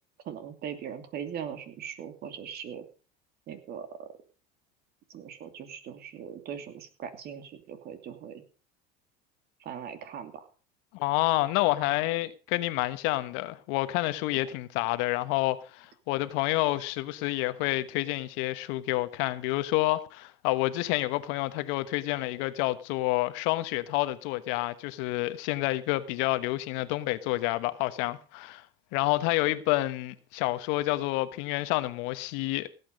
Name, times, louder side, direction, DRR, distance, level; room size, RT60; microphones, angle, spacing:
voice 1, 0.2-2.9 3.5-4.1 5.1-8.4 9.6-10.5 14.4-14.5, right 8 dB, 50° right, 2.7 m, -40 dB
voice 2, 10.9-28.6 28.9-32.7, left 18 dB, 70° left, 1.3 m, -29 dB
17.0 x 8.7 x 5.3 m
supercardioid pair, 110°, 21 cm